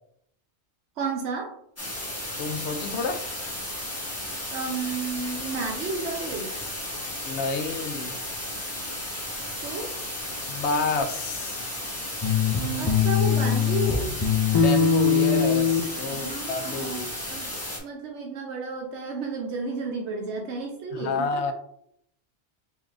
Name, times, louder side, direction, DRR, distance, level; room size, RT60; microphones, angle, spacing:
voice 1, 1.0-1.5 4.5-6.5 9.6-9.9 12.8-14.2 16.1-17.0 17.3-21.5, right 3 dB, 90° right, 1 dB, 1.0 m, -32 dB
sound 1, 1.8-17.8, left 1 dB, 15° left, 1.0 m, -34 dB
voice 2, 2.4-3.3 7.2-8.2 10.5-11.7 14.5-17.1 20.9-21.5, left 4 dB, 80° left, 7 dB, 0.9 m, -30 dB
sound 2, 12.2-14.0 14.2-15.8, left 6 dB, 40° left, 0.3 m, -21 dB
4.1 x 3.7 x 2.4 m, 0.70 s
omnidirectional pair, 1.1 m